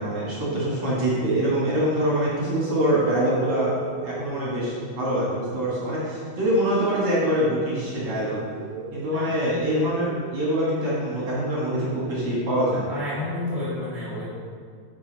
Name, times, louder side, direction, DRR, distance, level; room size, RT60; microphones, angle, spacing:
voice 1, 0.0-8.4 8.9-12.8, right 1 dB, 45° right, -7 dB, 2.0 m, -24 dB
sound 1, 1.5-1.7 2.5-7.9 8.3-12.2, right 4 dB, 90° right, 3.0 m, -37 dB
voice 2, 12.9-14.2, left 2 dB, 85° left, -8 dB, 0.5 m, -30 dB
9.8 x 7.0 x 4.1 m, 2.1 s
omnidirectional pair, 4.7 m